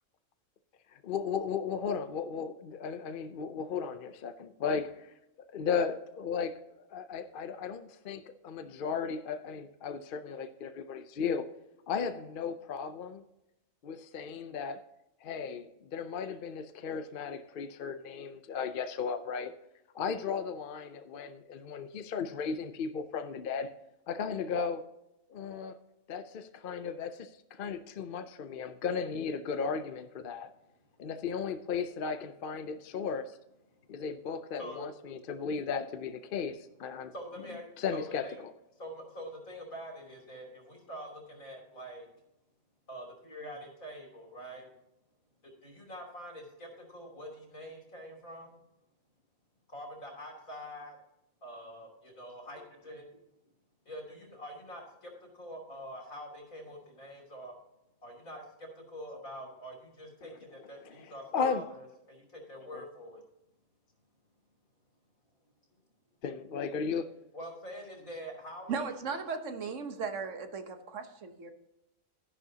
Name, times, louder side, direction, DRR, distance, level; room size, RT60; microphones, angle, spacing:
voice 1, 1.0-5.1 5.5-6.5 6.9-11.5 11.9-13.2 13.8-14.8 15.2-19.5 19.9-23.7 24.1-24.8 25.3-25.7 26.1-30.5 31.0-33.4 33.9-37.1 37.8-38.5 60.9-61.6 62.7-62.9 66.2-67.1, left 6 dB, 55° left, 9 dB, 0.6 m, -35 dB
voice 2, 34.6-34.9 37.1-38.4 38.8-42.1 42.9-44.7 45.4-48.5 49.7-51.0 51.4-53.1 53.8-57.5 58.0-63.2 67.3-68.8, equal, 75° left, 1 dB, 3.4 m, -45 dB
voice 3, 68.7-71.5, right 5 dB, 65° right, 7 dB, 1.3 m, -37 dB
12.0 x 11.0 x 2.8 m, 0.88 s
omnidirectional pair, 1.4 m